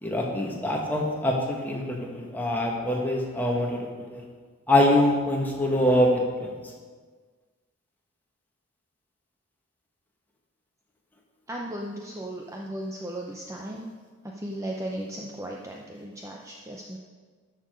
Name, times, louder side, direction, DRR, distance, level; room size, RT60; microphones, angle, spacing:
voice 1, 0.0-4.2 4.7-6.5, left 1 dB, 10° left, -1 dB, 1.6 m, -24 dB
voice 2, 11.5-13.9 14.2-17.0, right 1 dB, 15° right, 0 dB, 0.6 m, -36 dB
12.5 x 6.7 x 5.2 m, 1.5 s
head